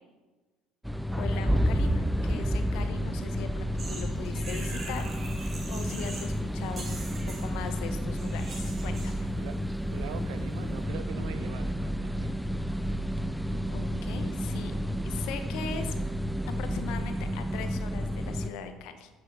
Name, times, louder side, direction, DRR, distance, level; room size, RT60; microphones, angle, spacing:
sound 1, 0.8-18.5, equal, ahead, 0.3 m, -31 dB
voice 1, 1.2-5.1 5.4-9.3 13.7-14.7 15.0-15.9 16.6-19.1, left 6 dB, 75° left, 8 dB, 1.0 m, -40 dB
sound 2, 3.8-6.4 6.6-9.2, right 3 dB, 35° right, 2.1 m, -43 dB
voice 2, 9.9-12.3, right 8 dB, 85° right, 10 dB, 0.7 m, -42 dB
7.7 x 6.6 x 5.6 m, 1.3 s
supercardioid pair, 90°, 0 cm